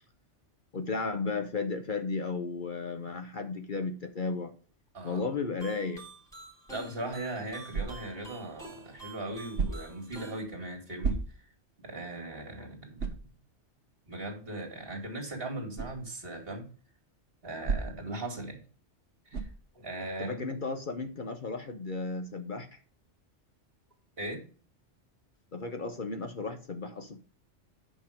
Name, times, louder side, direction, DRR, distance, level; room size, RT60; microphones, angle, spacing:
voice 1, 0.7-4.5 5.0-6.0 20.2-22.8 25.5-27.2, left 4 dB, 45° left, 7 dB, 1.0 m, -34 dB
sound 1, 5.6-10.4, right 1 dB, 5° left, 3.3 m, -48 dB
voice 2, 6.7-11.2 11.8-13.1 14.1-16.7 17.4-18.6 19.3-19.5 19.7-20.5 24.2-24.4, right 2 dB, 50° right, 2 dB, 2.7 m, -38 dB
sound 2, 7.7-8.2 9.5-10.0 11.0-11.6 12.1-12.2 13.0-13.3 15.7-16.0 17.6-18.2 19.3-19.7, right 5 dB, 70° right, 1.5 m, -33 dB
8.9 x 5.4 x 5.0 m, 0.39 s
omnidirectional pair, 1.2 m